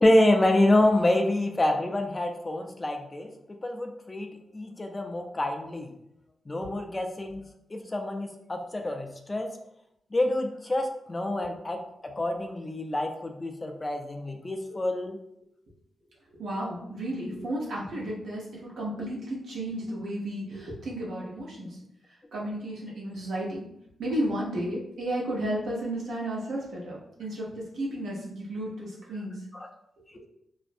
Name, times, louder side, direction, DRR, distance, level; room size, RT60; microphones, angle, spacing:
voice 1, 0.0-4.3 4.5-5.9 6.5-7.4 7.7-9.5 10.1-15.2 29.5-29.7, left 1 dB, 25° left, 4 dB, 0.3 m, -27 dB
voice 2, 16.4-21.8 22.3-23.7 24.0-29.4 30.1-30.2, right 1 dB, 80° right, -5 dB, 0.8 m, -33 dB
2.4 x 2.0 x 2.5 m, 0.77 s
cardioid pair, 95°, 0 cm